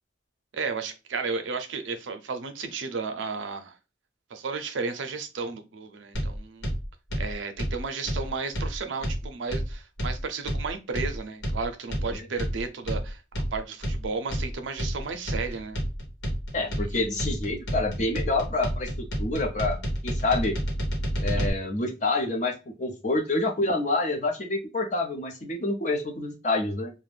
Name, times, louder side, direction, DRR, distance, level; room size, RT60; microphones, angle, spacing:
voice 1, 0.5-3.8 4.3-6.7 7.2-13.2 13.5-15.8 16.6-17.0, right 4 dB, 85° right, 0.5 m, -33 dB
sound 1, 6.1-21.5, equal, 85° left, 1.1 m, -30 dB
voice 2, 16.5-18.9 19.2-20.5 21.2-26.9, left 2 dB, 40° left, 0.6 m, -27 dB
2.5 x 2.1 x 3.2 m
head